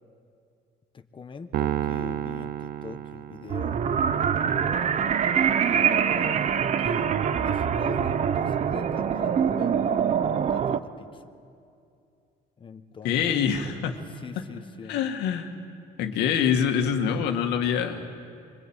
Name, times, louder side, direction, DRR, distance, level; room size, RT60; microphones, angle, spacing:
voice 1, 0.9-4.9 5.6-11.3 12.6-13.2 14.1-15.0, left 5 dB, 30° left, 8 dB, 1.5 m, -42 dB
Piano, 1.5-4.0, right 12 dB, 65° right, 0.8 m, -31 dB
sound 1, 3.5-10.8, right 8 dB, 45° right, 0.9 m, -24 dB
voice 2, 13.0-14.0 14.9-15.5 16.0-18.1, left 8 dB, 90° left, 5 dB, 2.2 m, -25 dB
25.0 x 23.5 x 9.1 m, 2.4 s
cardioid pair, 110°, 17 cm